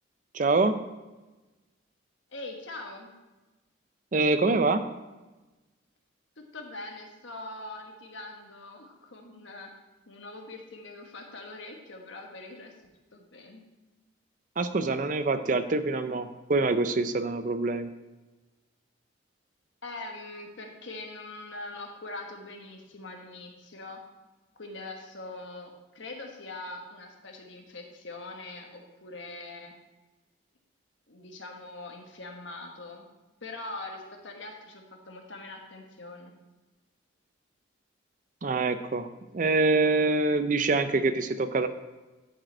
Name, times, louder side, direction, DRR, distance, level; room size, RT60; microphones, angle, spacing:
voice 1, 0.3-0.8 4.1-4.8 14.6-17.9 38.4-39.1 39.3-41.7, right 3 dB, 40° right, 11 dB, 0.5 m, -25 dB
voice 2, 2.3-3.1 6.4-9.7 10.1-12.7 13.1-13.6 19.8-24.0 24.6-29.7 31.1-33.1 33.4-36.3, left 2 dB, 70° left, 2 dB, 1.4 m, -42 dB
11.5 x 5.1 x 4.4 m, 1.1 s
head